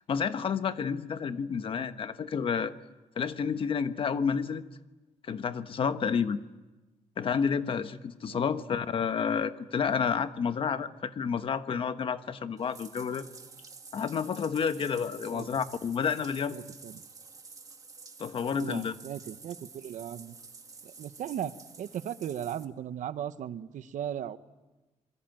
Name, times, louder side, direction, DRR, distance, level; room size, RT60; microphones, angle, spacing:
voice 1, 0.1-2.7 3.2-4.6 5.3-6.4 7.2-13.3 13.9-16.6 18.2-19.0, left 6 dB, 45° left, 10 dB, 1.2 m, -30 dB
voice 2, 8.3-8.6 15.3-15.5 16.5-17.0 18.5-20.4 20.8-21.5 21.8-24.4, right 10 dB, 80° right, 12 dB, 1.2 m, -37 dB
Bathtub (filling or washing), 12.6-22.6, right 4 dB, 30° right, 1.9 m, -50 dB
27.0 x 22.5 x 9.2 m, 1.1 s
wide cardioid pair, 170°, 13 cm